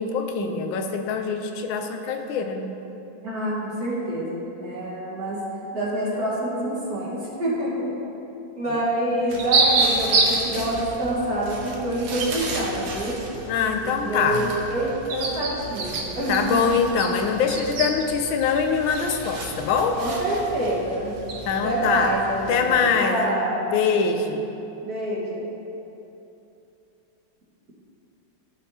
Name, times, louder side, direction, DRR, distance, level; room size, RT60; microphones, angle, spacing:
voice 1, 0.0-2.7 13.5-14.5 16.3-20.0 21.4-22.1 22.5-23.4 23.7-24.4, left 6 dB, 85° left, 5 dB, 1.4 m, -23 dB
voice 2, 3.2-5.4 5.7-7.9 8.6-13.2 13.8-16.6 20.0-21.1 21.6-23.7 24.8-25.5, right 1 dB, 55° right, -6 dB, 2.1 m, -27 dB
sound 1, 9.3-22.8, right 3 dB, 80° right, 1.7 m, -29 dB
15.0 x 5.3 x 2.8 m, 2.9 s
omnidirectional pair, 2.1 m